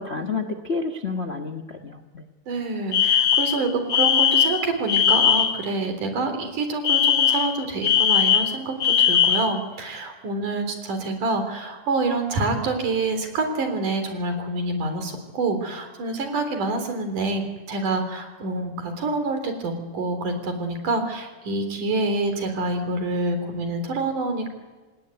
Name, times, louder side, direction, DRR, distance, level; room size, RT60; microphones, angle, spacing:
voice 1, 0.0-2.2, left 4 dB, 85° left, 5 dB, 0.5 m, -30 dB
voice 2, 2.5-24.5, right 3 dB, 90° right, 7 dB, 5.1 m, -27 dB
Alarm, 2.9-5.6 6.8-9.6, left 9 dB, 65° left, 0.9 m, -19 dB
27.0 x 19.5 x 9.5 m, 1.3 s
omnidirectional pair, 3.5 m